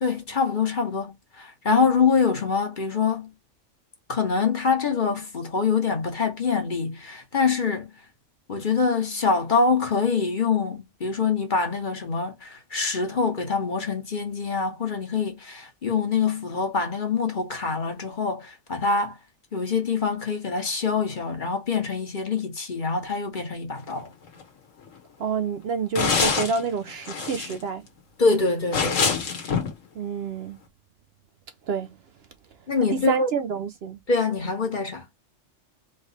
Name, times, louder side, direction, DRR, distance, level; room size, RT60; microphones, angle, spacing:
voice 1, 0.0-3.3 4.1-7.9 8.5-19.2 19.5-24.1 28.2-29.2 32.7-33.3 34.1-35.0, left 5 dB, 40° left, 1.3 m, -25 dB
sound 1, 23.9-24.0 24.3-24.4 24.9-25.0 26.0-26.6 26.9-27.6 28.7-29.7, left 5 dB, 85° left, 1.6 m, -25 dB
voice 2, 25.2-27.8 30.0-30.6 31.7-31.9 32.9-34.0, right 5 dB, 65° right, 0.7 m, -28 dB
3.8 x 3.1 x 4.1 m
omnidirectional pair, 1.3 m